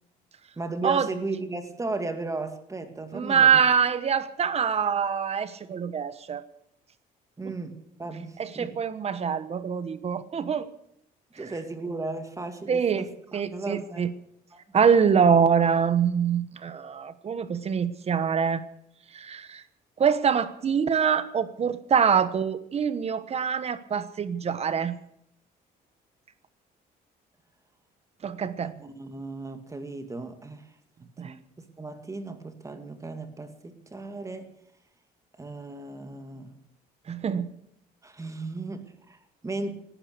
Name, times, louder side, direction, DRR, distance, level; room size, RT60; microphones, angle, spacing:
voice 1, 0.6-3.6 7.4-8.8 11.4-14.1 14.5-14.6 28.6-30.7 31.2-34.5 35.4-36.6 38.0-39.7, right 3 dB, 20° right, 2.0 m, -36 dB
voice 2, 3.1-6.4 7.4-7.6 8.4-10.7 12.7-14.1 14.7-18.6 19.1-19.6 20.0-25.0 28.2-28.7 31.2-31.3 37.1-37.5, right 7 dB, 40° right, 1.1 m, -24 dB
17.5 x 12.5 x 6.7 m
cardioid pair, 110°, 17 cm